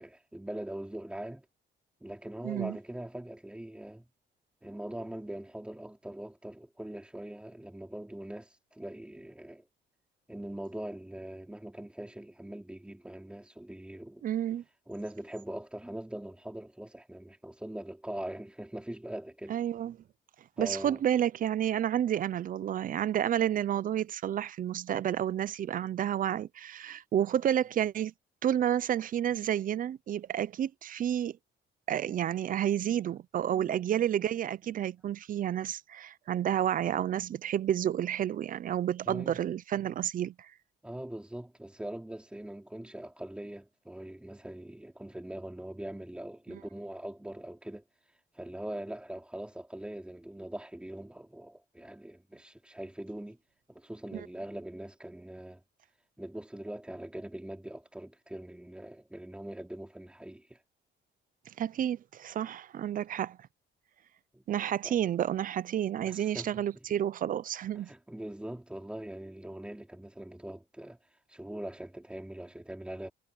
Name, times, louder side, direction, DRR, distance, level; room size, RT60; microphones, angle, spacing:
voice 1, 0.0-1.5 2.0-4.1 4.6-9.7 10.3-14.2 14.9-19.6 20.6-21.0 39.1-39.4 40.8-47.8 48.3-53.4 53.7-55.6 56.2-60.6 64.3-64.4 64.8-65.0 66.0-66.6 67.7-71.0 71.3-73.1, right 1 dB, 5° right, 4.2 m, -42 dB
voice 2, 2.4-2.8 14.2-14.6 19.5-20.0 20.6-28.1 28.4-31.4 31.9-40.5 54.1-54.3 61.6-63.4 64.5-67.9, right 10 dB, 45° right, 0.6 m, -30 dB
cardioid pair, 145°, 19 cm